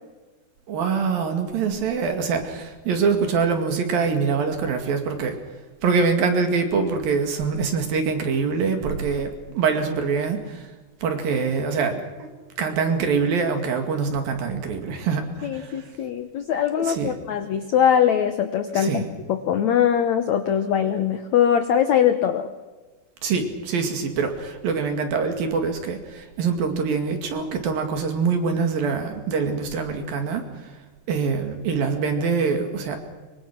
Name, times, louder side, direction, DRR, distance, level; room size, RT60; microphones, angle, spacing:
voice 1, 0.7-5.4 5.8-10.7 11.0-12.3 12.6-15.9 16.8-17.2 18.7-19.1 23.2-30.8 31.1-33.0, right 5 dB, 60° right, 5 dB, 3.9 m, -24 dB
voice 2, 15.4-19.0 19.3-22.5, left 9 dB, 80° left, 9 dB, 1.6 m, -21 dB
24.0 x 24.0 x 6.0 m, 1.3 s
omnidirectional pair, 4.8 m